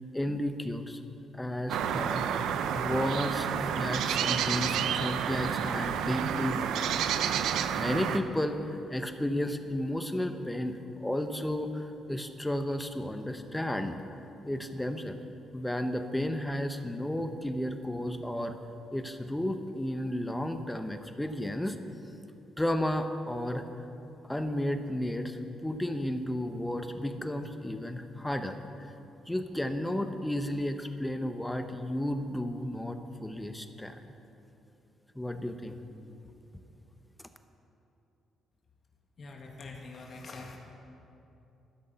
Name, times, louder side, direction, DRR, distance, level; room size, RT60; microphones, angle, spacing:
voice 1, 0.1-1.0 1.3-2.2 2.7-6.9 7.8-14.0 14.4-15.2 15.5-18.6 18.9-21.8 22.6-23.7 24.3-28.9 29.3-34.0 35.1-36.2, left 1 dB, 10° left, 8 dB, 0.9 m, -33 dB
sound 1, 1.7-8.2, right 8 dB, 80° right, 0.6 m, -30 dB
voice 2, 39.2-40.6, left 3 dB, 45° left, 1 dB, 1.6 m, -44 dB
12.5 x 6.5 x 9.1 m, 2.9 s
cardioid pair, 90°, 0 cm